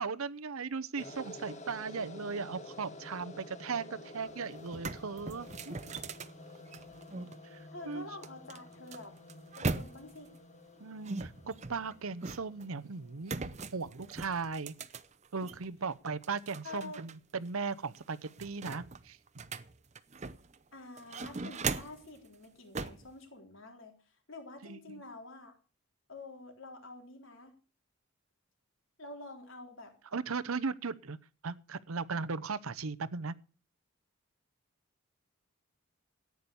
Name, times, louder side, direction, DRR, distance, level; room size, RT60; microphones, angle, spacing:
voice 1, 0.0-5.7 7.5-8.1 10.8-14.7 15.3-19.2 24.6-25.0 30.1-31.2 31.4-33.3, right 4 dB, 85° right, 0.8 m, -37 dB
sound 1, 1.0-13.2, left 1 dB, 35° left, 1.8 m, -50 dB
sound 2, 4.2-4.3 4.6-7.3 8.2-10.3 11.1-12.7 13.2-15.7 16.1-17.1 17.5-17.6 17.9-20.6 21.0-22.1 22.7-23.1, right 4 dB, 30° right, 0.7 m, -39 dB
voice 2, 7.7-9.2 9.6-10.3 16.6-17.0 20.7-23.9 24.3-25.5 26.1-27.6 29.0-29.9, left 2 dB, 65° left, 3.8 m, -48 dB
14.0 x 9.6 x 7.0 m
head